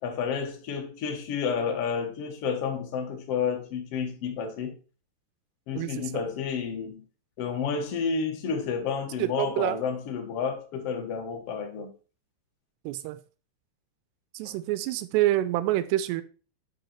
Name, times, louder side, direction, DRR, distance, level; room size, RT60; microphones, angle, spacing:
voice 1, 0.0-4.8 5.7-7.0 7.4-11.9, left 6 dB, 85° left, 1.3 m, -30 dB
voice 2, 5.8-6.3 9.2-9.8 12.8-13.2 14.3-16.2, right 14 dB, 85° right, 2.7 m, -27 dB
8.0 x 5.5 x 4.5 m
omnidirectional pair, 4.9 m